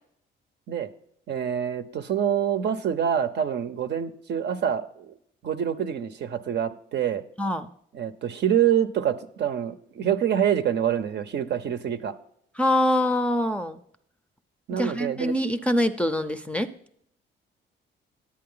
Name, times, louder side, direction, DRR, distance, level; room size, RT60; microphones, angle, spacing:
voice 1, 1.3-5.1 5.4-7.2 7.9-12.1 14.7-15.4, right 9 dB, 60° right, 9 dB, 0.7 m, -26 dB
voice 2, 7.4-7.7 12.6-13.8 14.7-16.7, left 1 dB, 5° left, 9 dB, 0.5 m, -24 dB
10.0 x 8.6 x 3.8 m, 0.67 s
cardioid pair, 90°, 20 cm